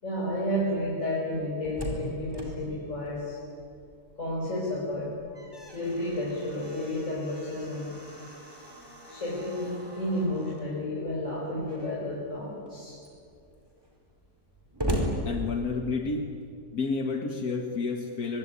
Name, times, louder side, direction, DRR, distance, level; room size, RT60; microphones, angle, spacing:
voice 1, 0.0-3.4 4.2-5.1 5.7-7.9 9.1-13.0, left 1 dB, 55° left, -5 dB, 5.7 m, -31 dB
Slam, 1.3-4.1 4.5-4.6 5.0-10.7 11.6-12.1 12.7-12.8 13.0-16.1, equal, 15° right, 4.6 m, -38 dB
voice 2, 15.3-16.3 16.7-18.4, left 4 dB, 80° left, 4 dB, 2.1 m, -30 dB
23.5 x 23.5 x 9.8 m, 2.4 s
omnidirectional pair, 1.5 m